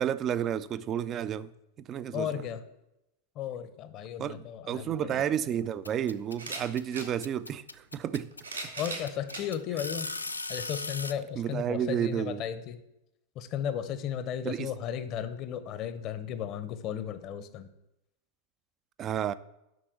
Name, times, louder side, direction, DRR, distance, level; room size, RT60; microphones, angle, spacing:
voice 1, 0.0-1.5 1.9-2.3 4.2-8.3 11.4-12.4 14.4-14.7 19.0-19.3, right 9 dB, 30° right, 0.4 m, -31 dB
voice 2, 2.1-2.6 3.4-5.3 8.8-10.1 10.5-12.8 13.4-17.7, left 9 dB, 35° left, 0.9 m, -35 dB
sound 1, 4.9-5.0 6.3-7.1 8.1-9.5 10.2-10.3 11.6-11.7, right 3 dB, 80° right, 2.5 m, -39 dB
sound 2, 5.8-11.1, left 3 dB, 80° left, 0.4 m, -37 dB
7.9 x 6.1 x 7.8 m
figure-of-eight pair, 90°, 0 cm